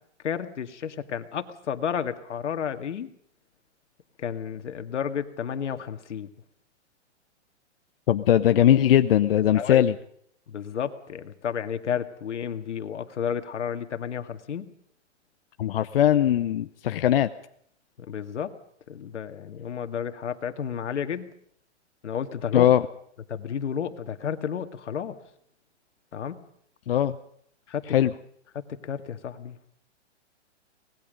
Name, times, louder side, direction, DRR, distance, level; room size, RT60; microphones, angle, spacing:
voice 1, 0.2-3.1 4.2-6.3 9.5-9.8 10.5-14.7 18.0-18.6 18.9-21.3 22.0-22.7 23.3-25.2 26.1-26.4 27.7-27.8 28.6-29.6, left 8 dB, 75° left, 9 dB, 2.1 m, -32 dB
voice 2, 8.1-10.0 15.6-17.3 22.5-22.8 26.9-27.2 27.9-28.1, left 11 dB, 50° left, 10 dB, 0.8 m, -20 dB
25.5 x 20.0 x 5.2 m, 0.67 s
hypercardioid pair, 160°, 35 cm